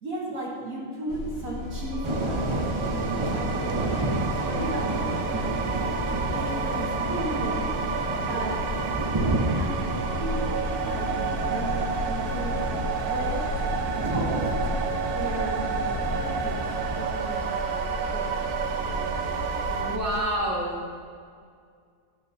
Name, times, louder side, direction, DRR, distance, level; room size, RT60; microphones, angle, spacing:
voice 1, 0.0-3.9 4.3-5.1 5.3-5.8 6.1-7.8 8.3-8.6 9.5-9.9 10.2-11.1 11.5-12.6 13.1-13.5 14.0-14.5 15.1-16.7 16.9-19.1 19.9-20.0, right 1 dB, 65° right, -3 dB, 1.7 m, -36 dB
sound 1, 1.1-20.2, left 3 dB, 70° left, 1.2 m, -35 dB
sound 2, 1.8-20.0, right 7 dB, 85° right, 1.1 m, -31 dB
sound 3, 2.0-19.8, right 1 dB, 25° right, 0.7 m, -32 dB
voice 2, 19.7-21.0, right 1 dB, 10° right, -6 dB, 1.9 m, -30 dB
13.0 x 8.8 x 2.8 m, 2.1 s
omnidirectional pair, 1.6 m